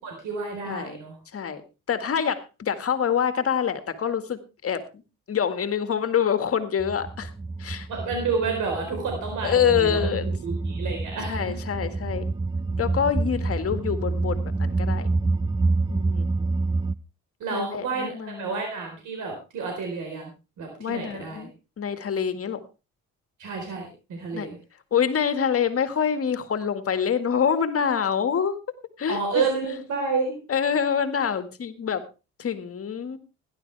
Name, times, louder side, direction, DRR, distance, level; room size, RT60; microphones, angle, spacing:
voice 1, 0.0-1.1 7.9-10.0 10.4-11.6 17.4-20.3 20.6-21.5 23.4-24.6 29.1-30.4, right 4 dB, 80° right, 2 dB, 4.3 m, -30 dB
voice 2, 0.7-1.0 1.3-1.6 1.9-5.0 5.3-7.3 7.6-7.9 9.4-10.3 11.3-12.3 12.8-15.1 15.9-16.3 17.5-18.6 20.8-21.5 21.8-22.6 24.3-24.5 24.9-28.6 29.0-29.8 30.5-32.0 32.4-33.2, left 7 dB, 50° left, 10 dB, 1.9 m, -26 dB
sound 1, 6.8-17.0, right 3 dB, 15° right, 0.6 m, -27 dB
17.5 x 11.5 x 3.4 m, 0.31 s
cardioid pair, 90°, 30 cm